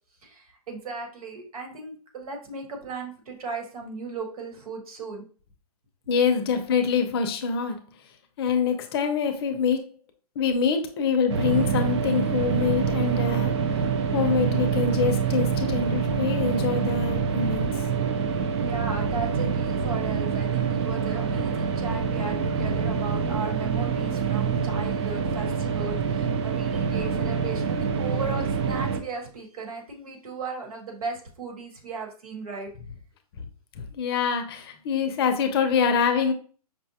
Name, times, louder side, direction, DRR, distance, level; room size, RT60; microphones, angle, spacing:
voice 1, 0.2-5.2 18.5-32.7, right 4 dB, 70° right, 1.4 m, -36 dB
voice 2, 6.1-7.9 8.4-9.8 10.4-13.5 14.1-17.9 33.8-36.3, left 6 dB, 40° left, 0.6 m, -25 dB
sound 1, 11.3-29.0, right 6 dB, 45° right, 0.5 m, -26 dB
5.3 x 2.2 x 2.8 m
hypercardioid pair, 150°, 20 cm